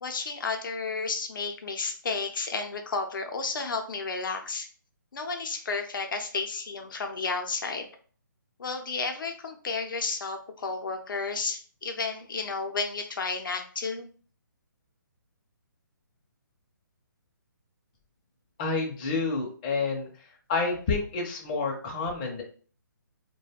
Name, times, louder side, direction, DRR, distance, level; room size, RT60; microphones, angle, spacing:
voice 1, 0.0-4.7 5.1-7.9 8.6-14.1, left 4 dB, 70° left, 4 dB, 0.6 m, -32 dB
voice 2, 18.6-20.1 20.5-22.4, left 4 dB, 25° left, 0 dB, 0.5 m, -29 dB
2.3 x 2.2 x 3.4 m, 0.42 s
hypercardioid pair, 160°, 11 cm